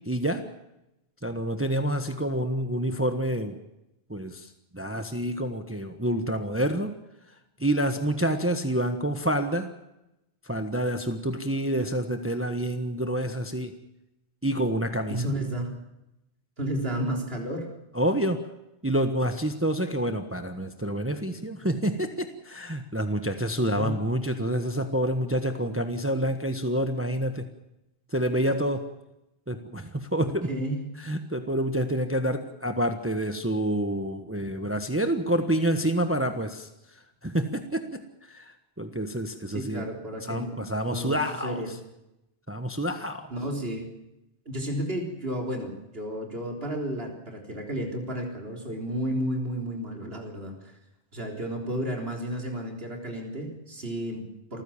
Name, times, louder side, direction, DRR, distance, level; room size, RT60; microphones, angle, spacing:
voice 1, 0.1-0.4 1.2-3.6 4.1-7.0 7.6-9.7 10.4-13.7 14.4-15.3 17.9-18.4 18.8-27.5 28.1-28.9 29.5-30.5 31.0-36.7 37.2-39.9 40.2-41.6 42.5-43.3, right 1 dB, 10° right, 7 dB, 1.2 m, -28 dB
voice 2, 15.1-15.7 16.6-17.7 23.6-24.0 30.2-30.9 39.5-41.8 43.3-43.9 44.5-50.7 51.1-54.6, right 1 dB, 60° right, 2 dB, 4.0 m, -32 dB
27.5 x 15.0 x 7.2 m, 0.90 s
omnidirectional pair, 1.1 m